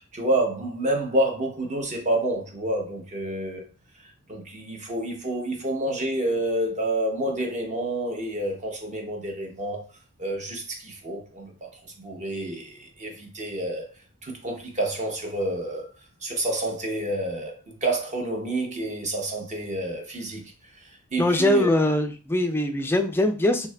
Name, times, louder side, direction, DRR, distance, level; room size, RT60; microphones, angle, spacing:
voice 1, 0.1-3.6 4.0-9.8 10.2-13.9 14.2-15.9 16.2-20.4 20.7-21.7, right 1 dB, 35° right, 0.7 m, -29 dB
voice 2, 21.2-23.7, left 1 dB, 10° left, 0.3 m, -22 dB
2.7 x 2.4 x 3.2 m
head